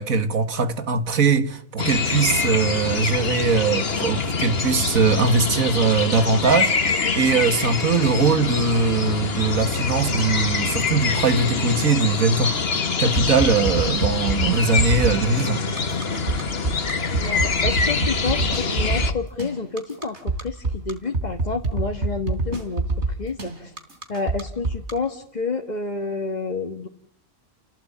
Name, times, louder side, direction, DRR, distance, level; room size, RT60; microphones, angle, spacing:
voice 1, 0.0-12.5 13.0-15.6, right 4 dB, 80° right, 2.1 m, -21 dB
sound 1, 1.8-19.1, left 4 dB, 45° left, 1.7 m, -25 dB
sound 2, 13.1-24.9, right 2 dB, 55° right, 3.8 m, -25 dB
voice 2, 17.2-23.7 24.1-26.9, left 4 dB, 30° left, 1.6 m, -29 dB
30.0 x 17.5 x 8.6 m
omnidirectional pair, 1.4 m